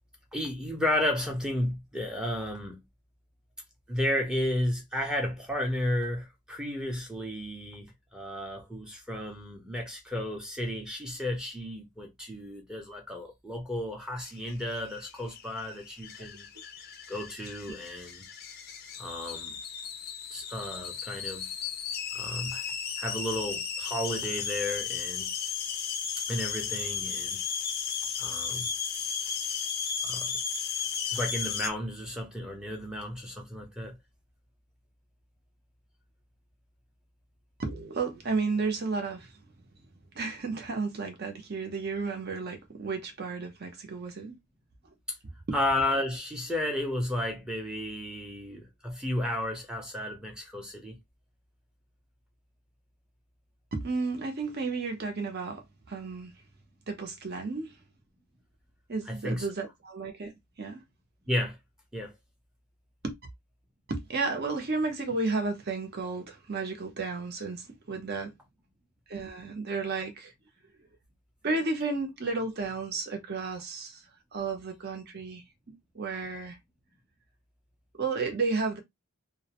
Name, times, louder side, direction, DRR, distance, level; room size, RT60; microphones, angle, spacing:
voice 1, 0.3-2.8 3.9-16.5 17.1-18.3 19.0-19.6 20.3-21.5 22.1-22.6 23.0-25.3 26.3-27.4 28.2-28.7 30.0-30.4 31.1-34.0 45.5-51.0 59.1-59.5 61.3-61.6 61.9-62.1, left 1 dB, 5° right, 0.6 m, -33 dB
sound 1, 14.4-31.7, left 7 dB, 45° left, 0.4 m, -35 dB
voice 2, 37.6-39.4 40.1-44.4 45.5-45.6 53.7-56.3 56.9-57.8 58.9-60.8 63.0-63.1 63.9-68.3 69.1-70.3 71.4-74.0 74.3-75.4 75.9-76.6 78.0-78.8, right 3 dB, 45° right, 0.7 m, -32 dB
2.5 x 2.0 x 2.9 m
head